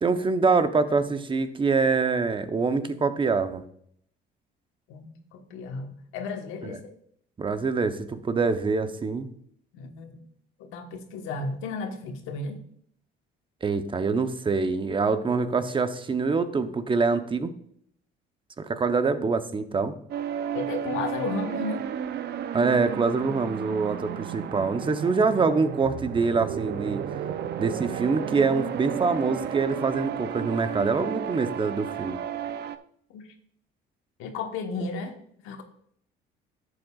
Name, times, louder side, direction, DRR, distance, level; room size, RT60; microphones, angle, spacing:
voice 1, 0.0-3.6 6.6-6.7 7.4-9.3 13.6-17.5 18.6-19.9 22.5-27.0 27.6-32.2, right 4 dB, 25° right, 9 dB, 0.8 m, -25 dB
voice 2, 4.9-6.8 9.7-10.2 10.6-12.6 20.5-21.9 33.1-33.3 34.2-35.2 35.4-35.6, left 3 dB, 80° left, 4 dB, 1.3 m, -33 dB
sound 1, 20.1-32.8, right 9 dB, 55° right, 0.6 m, -33 dB
11.0 x 7.9 x 2.4 m, 0.67 s
cardioid pair, 100°, 20 cm